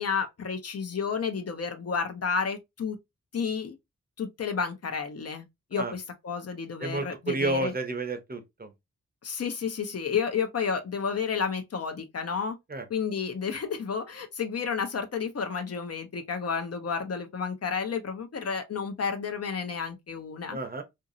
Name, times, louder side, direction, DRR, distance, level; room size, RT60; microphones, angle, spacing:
voice 1, 0.0-3.0 3.3-3.8 4.2-5.4 5.7-7.7 9.2-12.6 12.9-20.6, left 6 dB, 55° left, 0.7 m, -31 dB
voice 2, 6.8-8.7 12.7-12.8 20.5-20.8, right 2 dB, 30° right, 0.7 m, -31 dB
2.8 x 2.6 x 2.5 m
cardioid pair, 65°, 30 cm